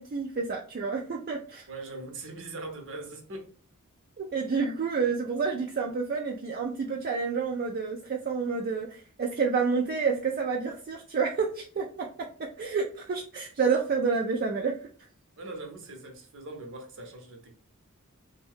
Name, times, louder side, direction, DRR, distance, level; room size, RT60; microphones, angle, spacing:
voice 1, 0.0-1.7 4.2-11.9 12.6-14.7, right 5 dB, 45° right, 0.4 m, -29 dB
voice 2, 1.7-3.5 15.4-17.5, right 2 dB, 60° right, 0.7 m, -41 dB
2.6 x 2.2 x 3.4 m
head